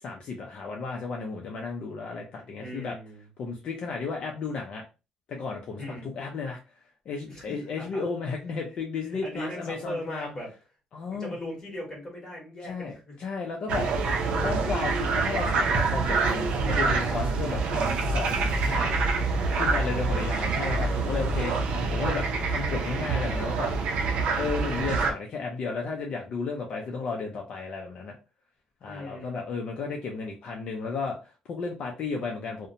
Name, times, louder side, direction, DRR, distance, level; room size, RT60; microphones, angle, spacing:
voice 1, 0.0-3.0 3.4-4.8 5.3-10.3 10.9-11.3 12.6-12.9 13.2-13.9 14.3-18.9 19.5-21.5 21.9-23.7 24.4-28.1 28.8-32.7, left 4 dB, 50° left, 1 dB, 0.5 m, -33 dB
voice 2, 2.5-3.3 5.8-6.1 7.3-8.0 9.2-10.5 11.2-13.2 19.4-20.5 21.1-21.7 28.9-29.4, equal, 20° left, -3 dB, 1.4 m, -39 dB
sound 1, 13.7-25.1, right 3 dB, 65° right, 0.5 m, -26 dB
2.7 x 2.1 x 2.5 m, 0.30 s
cardioid pair, 150°, 2 cm